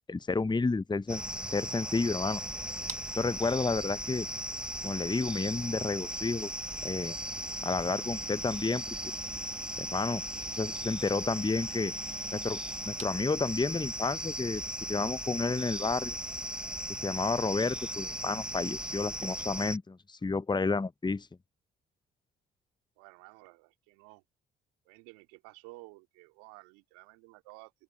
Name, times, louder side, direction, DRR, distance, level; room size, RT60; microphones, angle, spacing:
voice 1, 0.1-1.2 1.5-2.4 3.1-4.3 4.8-6.5 6.8-7.2 7.6-8.8 9.8-10.2 10.5-11.9 12.3-12.6 12.9-16.1 17.0-21.3, left 4 dB, 15° left, 0.8 m, -31 dB
sound 1, 1.0-19.8, right 3 dB, 20° right, 1.9 m, -53 dB
sound 2, 1.1-19.8, equal, 5° right, 1.1 m, -37 dB
voice 2, 23.0-24.2 24.8-27.7, right 25 dB, 80° right, 3.2 m, -53 dB
open air
hypercardioid pair, 50°, 30 cm